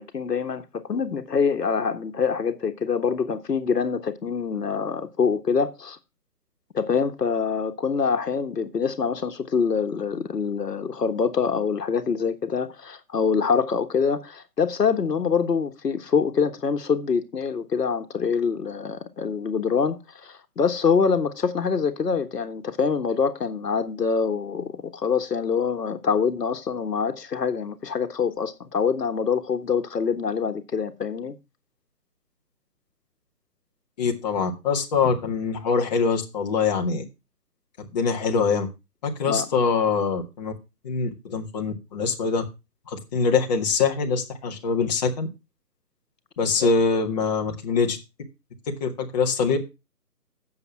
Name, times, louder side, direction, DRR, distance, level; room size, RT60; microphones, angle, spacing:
voice 1, 0.0-6.0 6.7-31.4 39.3-39.5 46.6-46.7, left 6 dB, 75° left, 1.5 m, -25 dB
voice 2, 34.0-37.0 37.9-38.7 39.0-40.5 40.8-42.4 42.9-45.3 46.4-48.0 48.7-49.6, left 5 dB, 25° left, 1.5 m, -24 dB
8.0 x 7.1 x 5.8 m
hypercardioid pair, 155°, 48 cm